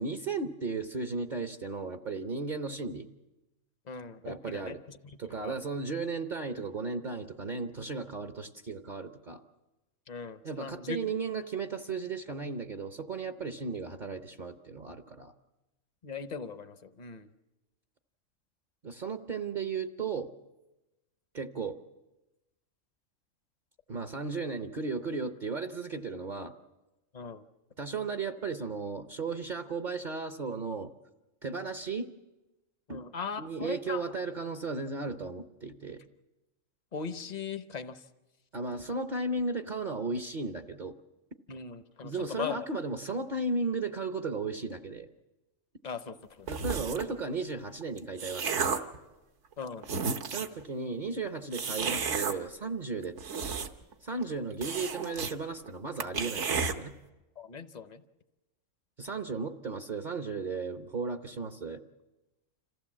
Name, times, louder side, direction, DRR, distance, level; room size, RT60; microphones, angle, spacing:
voice 1, 0.0-3.1 4.2-4.8 5.2-9.4 10.4-15.3 18.8-20.3 21.3-21.8 23.9-26.5 27.8-30.9 31.4-32.1 32.9-33.0 33.4-36.0 38.5-41.0 42.0-45.1 46.5-48.7 50.3-53.2 54.0-56.9 59.0-61.8, right 4 dB, 45° right, 7 dB, 0.8 m, -35 dB
voice 2, 3.9-4.8 5.4-5.5 10.1-11.0 16.0-17.3 27.1-27.4 32.9-34.0 36.9-38.0 41.5-42.7 45.8-46.5 49.6-49.9 57.4-58.0, left 6 dB, 40° left, 11 dB, 0.8 m, -39 dB
sound 1, 46.5-47.1 47.8-49.0 49.5-49.6 49.8-50.6 51.5-52.3 53.0-53.9 54.2-54.3 54.6-55.3 55.7-55.8 56.0-56.7, right 5 dB, 65° right, 1.3 m, -32 dB
27.0 x 15.5 x 7.4 m, 1.1 s
omnidirectional pair, 1.3 m